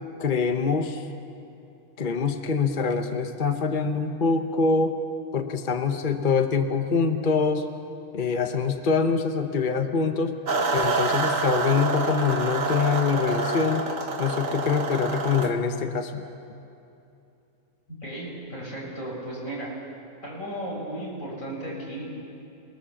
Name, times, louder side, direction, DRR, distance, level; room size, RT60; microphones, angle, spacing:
voice 1, 0.2-1.1 2.0-5.0 5.3-7.7 8.1-10.4 10.7-13.9 14.2-16.3, left 5 dB, 40° left, 6 dB, 1.2 m, -24 dB
sound 1, 10.5-15.5, right 3 dB, 70° right, 1.8 m, -27 dB
voice 2, 17.9-19.7 20.2-22.2, right 1 dB, 75° left, -4 dB, 7.0 m, -35 dB
28.5 x 19.5 x 7.2 m, 2.7 s
omnidirectional pair, 1.4 m